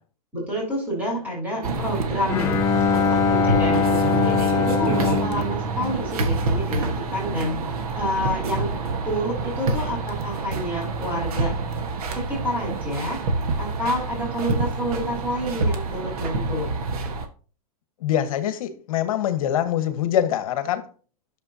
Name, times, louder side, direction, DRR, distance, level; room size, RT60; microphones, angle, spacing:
voice 1, 0.3-2.6 2.9-8.7 9.0-11.5 12.1-13.2 13.6-16.7, equal, 10° right, 3.2 m, -28 dB
sound 1, 1.6-17.3, right 3 dB, 65° right, 1.3 m, -27 dB
Bowed string instrument, 2.3-6.6, left 6 dB, 15° left, 0.4 m, -23 dB
voice 2, 18.0-20.9, left 10 dB, 60° left, 1.1 m, -24 dB
11.0 x 6.7 x 2.7 m
supercardioid pair, 160°, 20 cm